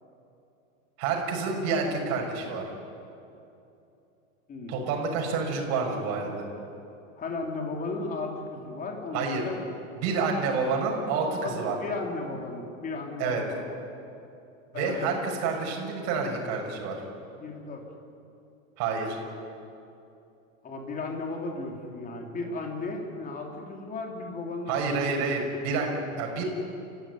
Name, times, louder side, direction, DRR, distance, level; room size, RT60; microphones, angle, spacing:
voice 1, 1.0-2.6 4.7-6.5 9.1-9.4 10.0-11.8 13.2-13.4 14.7-17.0 18.8-19.2 24.7-26.4, right 4 dB, 45° right, 1 dB, 6.5 m, -28 dB
voice 2, 4.5-4.9 7.2-9.6 11.4-13.6 14.7-15.2 17.4-17.8 20.6-24.8, left 3 dB, 20° left, 1 dB, 3.9 m, -35 dB
30.0 x 15.5 x 9.7 m, 2.7 s
supercardioid pair, 150°, 39 cm